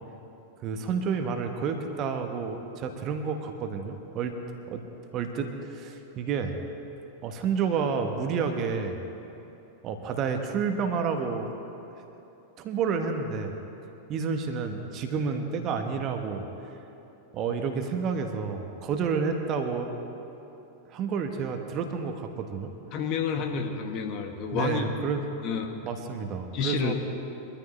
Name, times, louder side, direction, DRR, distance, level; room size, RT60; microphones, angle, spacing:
voice 1, 0.6-4.4 4.7-4.8 5.1-6.6 7.2-9.0 9.8-11.6 12.6-13.5 14.1-16.5 17.3-20.0 20.3-20.4 20.9-22.7 24.5-25.2 25.8-26.9, right 5 dB, 35° right, 5 dB, 1.3 m, -30 dB
voice 2, 22.9-24.8 25.4-25.8 26.5-26.9, left 6 dB, 40° left, 4 dB, 1.4 m, -29 dB
23.0 x 13.5 x 3.3 m, 3.0 s
figure-of-eight pair, 90°, 0 cm